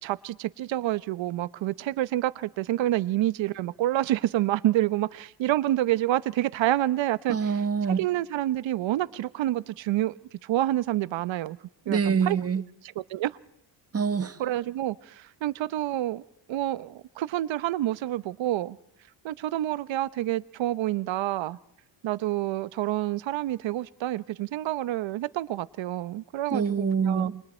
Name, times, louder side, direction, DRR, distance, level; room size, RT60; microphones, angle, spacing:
voice 1, 0.0-7.4 8.0-10.1 10.4-11.6 11.9-12.4 13.1-13.4 14.4-16.2 16.5-18.8 19.2-21.6 22.0-27.3, right 14 dB, 80° right, 1.0 m, -28 dB
voice 2, 7.3-8.0 11.9-12.6 13.9-14.4 26.5-27.4, right 6 dB, 30° right, 1.4 m, -25 dB
29.0 x 24.5 x 4.4 m
cardioid pair, 105°, 45 cm